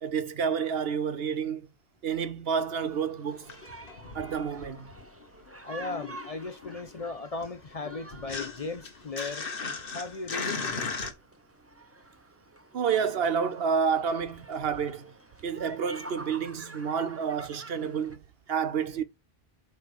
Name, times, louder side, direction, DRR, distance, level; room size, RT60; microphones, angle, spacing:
voice 1, 0.0-1.7 2.0-3.5 4.1-4.9 12.7-15.1 15.4-18.2 18.5-19.0, right 6 dB, 75° right, 1.1 m, -29 dB
sound 1, 2.4-18.2, right 2 dB, 15° right, 0.9 m, -50 dB
sound 2, 3.3-5.2 5.5-11.1, left 4 dB, 60° left, 1.4 m, -38 dB
voice 2, 5.6-9.5 9.9-10.6, left 3 dB, 40° left, 0.7 m, -37 dB
8.2 x 3.4 x 6.2 m
omnidirectional pair, 1.0 m